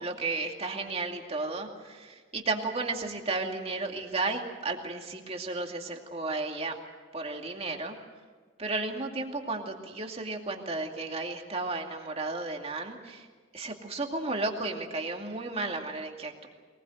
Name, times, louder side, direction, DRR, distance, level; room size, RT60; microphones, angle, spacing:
voice 1, 0.0-6.8 7.1-8.0 8.6-13.3 13.5-16.5, right 3 dB, 30° right, 3 dB, 2.4 m, -33 dB
22.5 x 20.5 x 7.9 m, 1.5 s
head